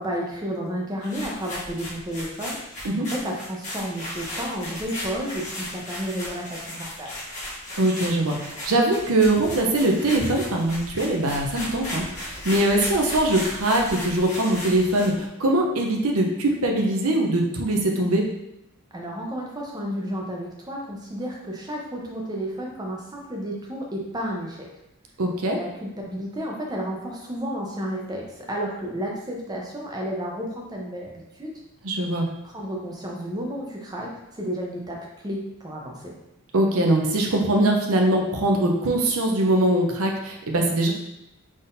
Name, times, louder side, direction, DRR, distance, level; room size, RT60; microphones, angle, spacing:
voice 1, 0.0-7.1 18.9-24.7 25.5-31.5 32.4-35.0 35.2-36.1, equal, 20° right, -2 dB, 0.6 m, -32 dB
sound 1, 1.0-15.2, left 1 dB, 30° left, 1.2 m, -36 dB
voice 2, 7.8-18.3 25.2-25.6 31.8-32.2 36.5-40.9, right 1 dB, 70° right, 1 dB, 0.7 m, -22 dB
4.0 x 3.6 x 2.6 m, 0.87 s
head